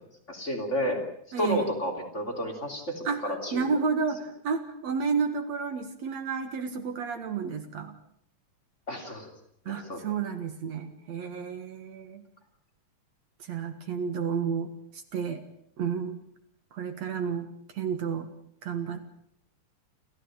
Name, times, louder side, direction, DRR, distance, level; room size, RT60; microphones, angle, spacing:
voice 1, 0.3-1.0 1.4-3.6 8.9-9.3 9.7-10.0, equal, 20° left, 2 dB, 3.3 m, -31 dB
voice 2, 1.3-1.7 3.1-8.0 9.7-12.2 13.5-15.4 15.8-16.2 16.7-17.5 17.7-18.3 18.6-19.0, right 6 dB, 60° right, 9 dB, 2.7 m, -31 dB
29.0 x 14.5 x 8.9 m, 0.70 s
omnidirectional pair, 3.6 m